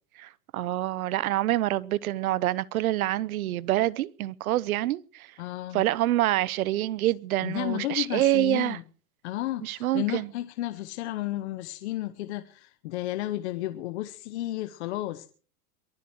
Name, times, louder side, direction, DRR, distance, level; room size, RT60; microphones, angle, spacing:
voice 1, 0.2-5.3 5.7-8.8 9.6-10.3, right 15 dB, 65° right, 0.9 m, -26 dB
voice 2, 5.4-5.8 7.4-8.8 9.2-15.3, left 15 dB, 45° left, 1.1 m, -32 dB
22.5 x 7.9 x 6.3 m
supercardioid pair, 160°, 47 cm